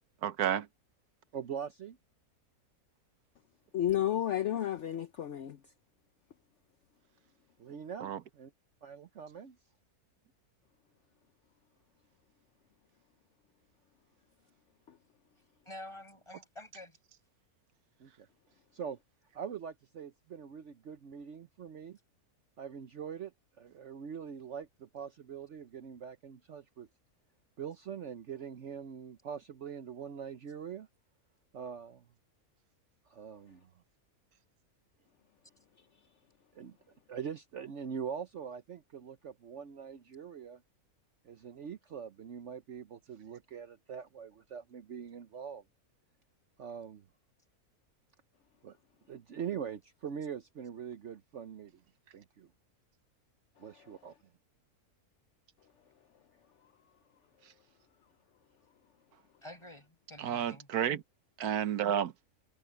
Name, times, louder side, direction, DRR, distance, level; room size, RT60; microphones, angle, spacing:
voice 1, 0.2-0.7 8.0-8.2 60.2-61.0 61.4-62.1, right 9 dB, 90° right, 1.4 m, -31 dB
voice 2, 1.3-2.0 7.6-8.5 8.8-9.6 18.0-18.3 18.7-19.0 19.3-22.0 22.6-23.3 23.6-26.9 27.6-30.9 31.5-32.0 33.1-33.7 36.5-36.8 37.1-40.6 41.2-45.6 46.6-47.0 48.6-48.8 49.1-51.7 52.1-52.5 53.6-54.1, right 7 dB, 55° right, 1.1 m, -43 dB
voice 3, 3.7-5.6 14.9-15.0 53.6-53.8, left 11 dB, 60° left, 1.0 m, -32 dB
voice 4, 15.7-17.0 59.4-60.7, left 1 dB, 20° left, 6.1 m, -48 dB
omnidirectional pair, 1.6 m